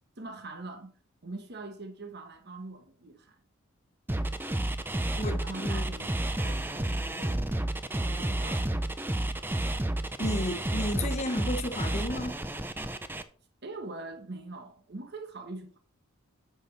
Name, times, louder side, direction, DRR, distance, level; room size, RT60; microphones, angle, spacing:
voice 1, 0.2-0.9 1.2-3.4 5.4-7.5 7.9-8.7 13.6-15.8, right 2 dB, 50° right, 1.1 m, -43 dB
sound 1, 4.1-13.2, right 1 dB, 10° right, 0.4 m, -31 dB
voice 2, 5.1-5.9 10.2-12.4, left 1 dB, 30° left, 1.0 m, -33 dB
9.0 x 6.0 x 4.0 m
head